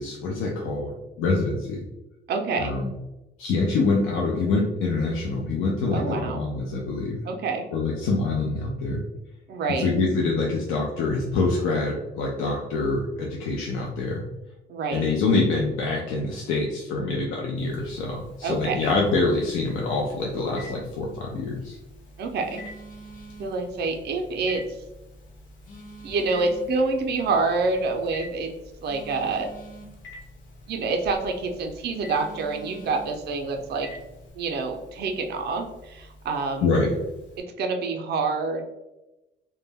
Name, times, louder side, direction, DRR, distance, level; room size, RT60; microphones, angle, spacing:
voice 1, 0.0-1.9 2.6-2.9 3.4-7.2 7.7-9.1 9.8-14.2 14.9-21.8 36.6-37.0, left 3 dB, 90° left, -1 dB, 0.4 m, -25 dB
voice 2, 2.3-2.8 5.9-6.4 7.2-7.7 9.5-9.9 14.7-15.0 18.4-18.9 22.2-22.6 23.4-24.6 26.0-28.5 28.8-29.5 30.7-33.9 34.3-36.7 37.4-38.7, right 3 dB, 55° right, 4 dB, 0.4 m, -27 dB
Telephone, 17.6-37.4, left 1 dB, 60° left, 1.0 m, -48 dB
Telephone 2, 21.5-34.3, right 2 dB, 45° left, 0.6 m, -48 dB
2.1 x 2.1 x 3.3 m, 0.99 s
cardioid pair, 90°, 20 cm